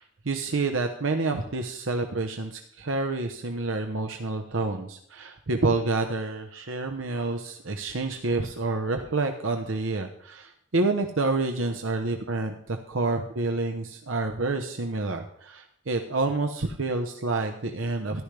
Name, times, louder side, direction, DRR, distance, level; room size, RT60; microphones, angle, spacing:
voice 1, 0.0-18.2, right 3 dB, 85° right, 5 dB, 0.9 m, -28 dB
14.0 x 11.5 x 3.4 m, 0.68 s
head